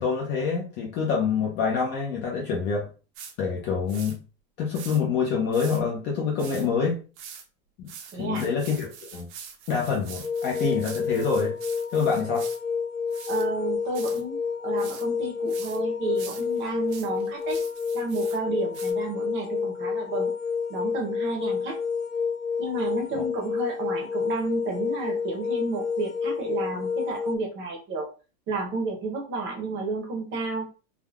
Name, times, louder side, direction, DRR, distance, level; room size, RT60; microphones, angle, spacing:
voice 1, 0.0-2.9 3.4-4.2 4.6-7.0 7.8-7.9 8.2-9.3 9.7-11.5 11.9-12.4, left 5 dB, 25° left, -2 dB, 0.4 m, -26 dB
sound 1, 3.1-3.3 3.9-4.2 4.7-5.0 5.5-5.8 6.4-6.7 7.2-7.4 7.9-12.6 13.1-13.4 13.9-14.2 14.8-15.0 15.5-15.8 16.1-18.4 18.7-18.9, right 7 dB, 60° right, 0.8 m, -43 dB
voice 2, 8.1-8.4 13.3-17.6 17.9-20.3 20.7-21.7 22.6-28.1 28.5-30.7, right 3 dB, 25° right, 1 dB, 0.7 m, -31 dB
sound 2, 10.2-27.4, left 5 dB, 75° left, 0.6 m, -29 dB
3.5 x 2.2 x 2.3 m, 0.35 s
supercardioid pair, 145°, 45 cm